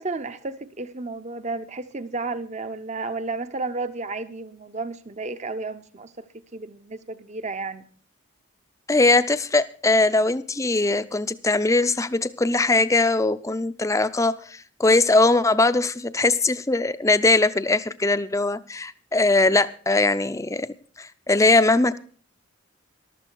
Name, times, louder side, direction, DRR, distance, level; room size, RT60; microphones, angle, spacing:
voice 1, 0.0-6.2 6.5-7.8, right 3 dB, 35° right, 0.7 m, -32 dB
voice 2, 8.9-20.7 21.0-22.0, left 2 dB, 15° left, 0.5 m, -21 dB
14.0 x 12.5 x 4.6 m
head